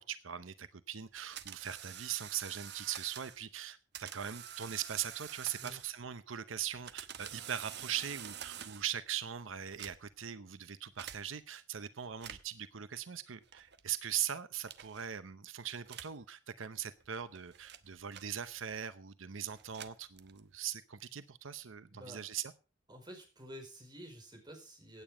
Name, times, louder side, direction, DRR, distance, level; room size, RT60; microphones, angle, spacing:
voice 1, 0.0-22.5, right 9 dB, 90° right, 0.8 m, -40 dB
sound 1, 1.2-3.4 3.9-6.1 6.6-9.0 9.6-10.3 11.0-11.2 12.1-12.6 13.5-13.8 14.7-15.1 15.9-16.2 17.0-18.8 19.5-20.6, right 10 dB, 60° right, 1.0 m, -48 dB
voice 2, 21.9-22.2 22.9-25.0, equal, 20° right, 5.0 m, -50 dB
16.5 x 9.1 x 5.0 m
head